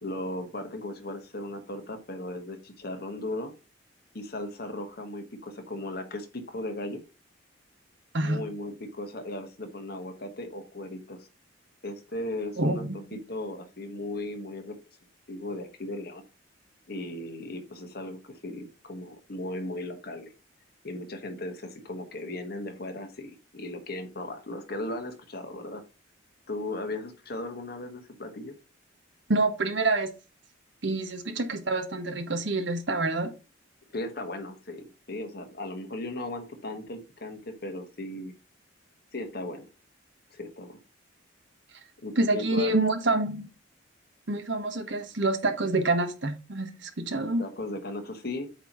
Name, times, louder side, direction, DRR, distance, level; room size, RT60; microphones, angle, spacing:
voice 1, 0.0-3.5 4.1-7.0 8.2-11.3 11.8-14.7 15.3-16.2 16.9-20.3 20.8-25.8 26.5-28.5 33.9-38.4 39.1-39.7 40.3-40.8 42.0-42.7 47.4-48.5, left 1 dB, 50° left, 5 dB, 1.4 m, -37 dB
voice 2, 12.6-13.0 29.3-30.1 30.8-33.3 42.2-43.5 44.3-47.4, right 2 dB, 65° right, 7 dB, 1.2 m, -27 dB
8.1 x 3.1 x 5.4 m, 0.31 s
head